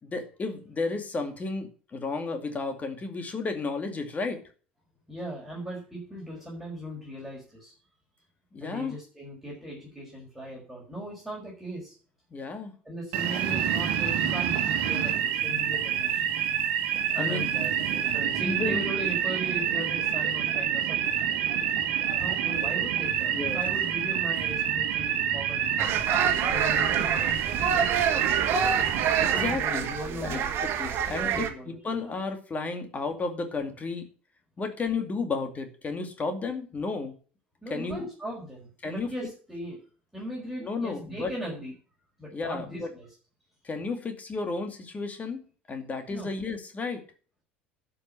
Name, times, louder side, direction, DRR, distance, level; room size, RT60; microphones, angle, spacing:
voice 1, 0.0-4.4 8.5-9.0 12.3-12.7 17.2-17.5 18.4-18.8 23.3-23.6 29.2-29.9 30.2-34.1 34.6-37.1 37.7-38.1 38.8-39.1 40.6-41.3 42.3-42.9 43.6-47.0, left 3 dB, 25° left, 7 dB, 2.4 m, -33 dB
voice 2, 5.1-7.7 8.6-12.0 12.9-14.6 14.9-16.2 17.1-21.2 22.2-25.6 26.1-27.1 27.7-28.0 29.2-30.6 31.1-32.0 37.6-39.8 40.1-41.7 42.2-43.1 46.1-46.3, right 1 dB, 5° right, -4 dB, 5.3 m, -38 dB
sound 1, 13.1-29.5, right 9 dB, 60° right, 1.7 m, -27 dB
sound 2, 25.8-31.5, right 8 dB, 45° right, 1.7 m, -27 dB
11.5 x 5.8 x 7.6 m, 0.40 s
figure-of-eight pair, 70°, 6 cm